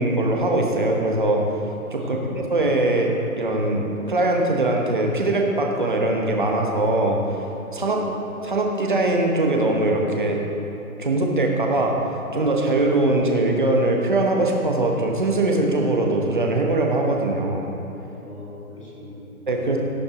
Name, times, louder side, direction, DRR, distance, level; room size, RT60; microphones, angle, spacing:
voice 1, 0.0-1.4 1.9-7.2 7.7-8.0 8.4-10.4 11.0-11.9 12.3-17.7 19.5-19.8, right 2 dB, 35° right, 0 dB, 1.1 m, -21 dB
voice 2, 2.0-2.4 7.7-8.2 18.2-19.5, left 1 dB, 20° left, -8 dB, 2.3 m, -41 dB
17.0 x 8.6 x 3.0 m, 3.0 s
hypercardioid pair, 180°, 44 cm